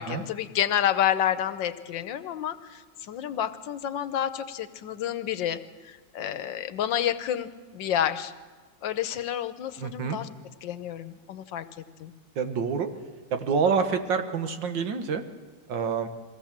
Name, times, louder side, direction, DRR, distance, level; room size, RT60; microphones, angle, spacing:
voice 1, 0.0-8.3 8.8-10.3 10.6-11.6 12.0-12.1, left 10 dB, 80° left, 12 dB, 1.5 m, -29 dB
voice 2, 9.8-10.2 12.4-12.9 13.3-15.2 15.7-16.1, right 5 dB, 75° right, 7 dB, 1.9 m, -27 dB
23.0 x 17.0 x 7.4 m, 1.4 s
omnidirectional pair, 2.0 m